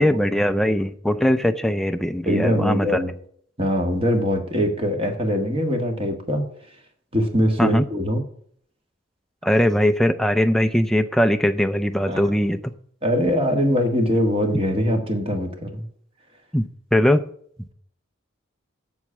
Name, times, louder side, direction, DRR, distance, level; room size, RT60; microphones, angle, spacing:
voice 1, 0.0-3.0 7.6-7.8 9.4-12.6 16.5-17.2, equal, ahead, 8 dB, 0.5 m, -20 dB
voice 2, 2.3-3.1 3.6-6.4 7.1-8.2 12.1-12.3 13.0-15.8, equal, 30° right, 4 dB, 1.6 m, -22 dB
7.8 x 7.3 x 8.5 m, 0.63 s
head